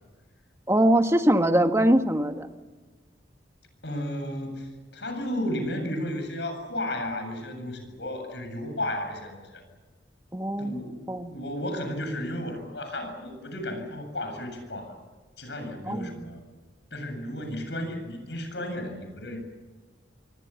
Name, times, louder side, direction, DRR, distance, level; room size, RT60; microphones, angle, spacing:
voice 1, 0.7-2.5 10.3-10.7 11.1-11.3 15.9-16.1, right 1 dB, 15° right, 7 dB, 1.5 m, -22 dB
voice 2, 3.8-9.6 10.6-15.0 15.4-16.4 16.9-19.4, left 1 dB, 70° left, 6 dB, 7.7 m, -33 dB
28.0 x 24.5 x 7.2 m, 1.4 s
head